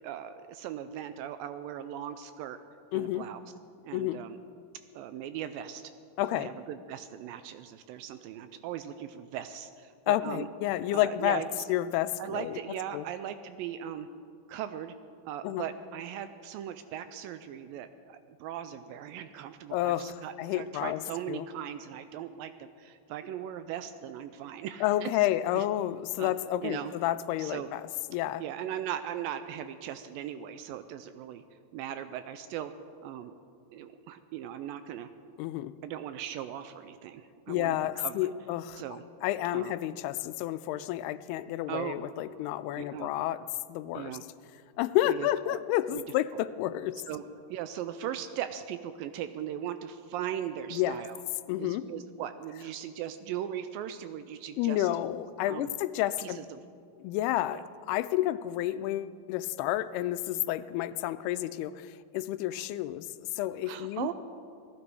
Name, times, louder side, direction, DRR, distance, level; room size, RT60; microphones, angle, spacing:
voice 1, 0.0-2.6 2.9-3.4 3.8-4.4 5.0-5.9 6.3-10.5 10.9-11.6 12.2-14.1 14.5-15.0 15.3-25.1 25.5-25.7 26.2-26.3 26.6-26.9 27.4-27.8 28.4-31.4 31.7-32.7 33.0-33.3 33.7-35.1 35.8-38.3 38.8-39.0 39.5-39.7 41.7-41.9 42.8-43.1 43.9-44.2 45.1-45.6 45.9-46.0 47.1-47.2 47.5-51.2 51.6-54.9 55.5-55.7 56.2-56.6 57.5-57.6 63.6-64.1, right 10 dB, 85° right, 11 dB, 2.1 m, -38 dB
voice 2, 2.9-3.3 3.9-4.2 6.2-6.5 10.1-11.4 11.7-12.6 12.9-13.1 15.4-15.7 19.7-21.5 24.8-27.8 28.1-28.4 35.4-35.7 37.5-38.8 39.2-44.2 44.8-47.0 50.7-51.0 51.5-51.8 54.6-56.4 57.0-57.6 57.9-64.1, left 14 dB, 90° left, 13 dB, 2.5 m, -30 dB
18.5 x 14.5 x 4.7 m, 2.3 s
omnidirectional pair, 4.5 m